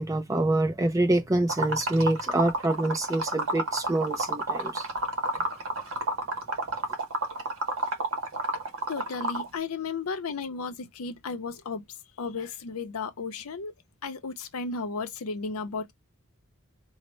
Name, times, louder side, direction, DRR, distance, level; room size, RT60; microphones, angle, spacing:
voice 1, 0.0-4.9, right 1 dB, 15° right, 0.4 m, -26 dB
Liquid, 1.5-9.5, right 2 dB, 65° right, 0.8 m, -30 dB
voice 2, 8.9-11.8 12.2-13.7 14.0-15.9, left 4 dB, 80° left, 0.6 m, -34 dB
4.1 x 2.1 x 3.0 m
head